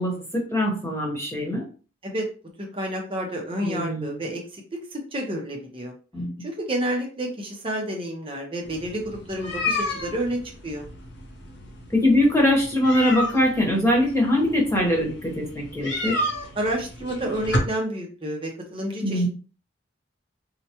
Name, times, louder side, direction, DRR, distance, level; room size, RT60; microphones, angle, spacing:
voice 1, 0.0-1.6 3.6-4.2 6.1-6.5 11.9-16.3 19.0-19.3, left 1 dB, 15° left, -1 dB, 1.1 m, -22 dB
voice 2, 2.7-4.4 4.9-5.9 6.4-10.9 16.6-19.3, right 1 dB, 30° right, 1 dB, 0.7 m, -29 dB
sound 1, 8.6-17.6, left 1 dB, 60° left, 0.8 m, -32 dB
4.6 x 2.2 x 2.9 m, 0.37 s
head